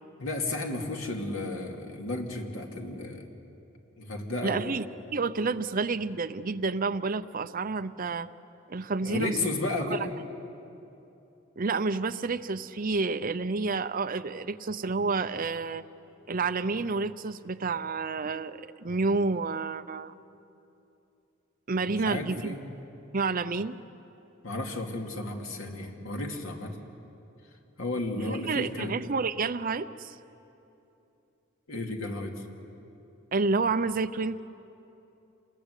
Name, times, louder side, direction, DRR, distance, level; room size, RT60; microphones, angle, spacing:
voice 1, 0.2-3.2 4.0-4.7 9.0-10.1 21.9-22.6 24.4-26.8 27.8-29.0 31.7-32.5, left 2 dB, 85° left, 2 dB, 2.6 m, -33 dB
voice 2, 4.4-4.9 5.1-8.3 8.7-9.3 9.9-10.0 11.6-15.8 16.3-20.1 21.7-22.5 23.1-23.8 28.2-30.2 33.3-34.4, right 4 dB, 45° right, 10 dB, 0.7 m, -29 dB
28.0 x 21.0 x 8.3 m, 2.9 s
head